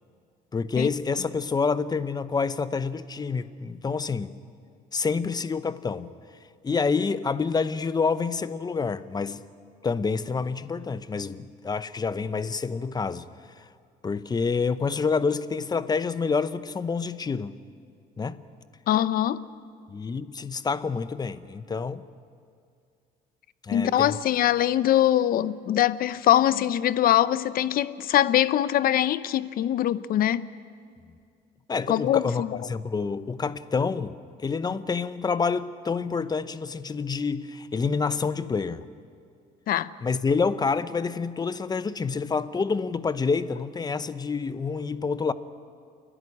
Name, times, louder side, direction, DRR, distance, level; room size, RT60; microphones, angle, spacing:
voice 1, 0.5-4.3 4.9-6.1 6.6-9.4 9.8-13.3 13.6-13.7 14.0-17.5 18.2-18.4 19.9-22.0 23.6-24.2 31.7-38.8 40.0-45.3, left 5 dB, 25° left, 0.7 m, -28 dB
voice 2, 18.9-19.4 23.7-30.5 31.9-32.6 39.7-39.9, left 12 dB, 60° left, 0.7 m, -23 dB
29.0 x 11.0 x 9.8 m
cardioid pair, 110°, 17 cm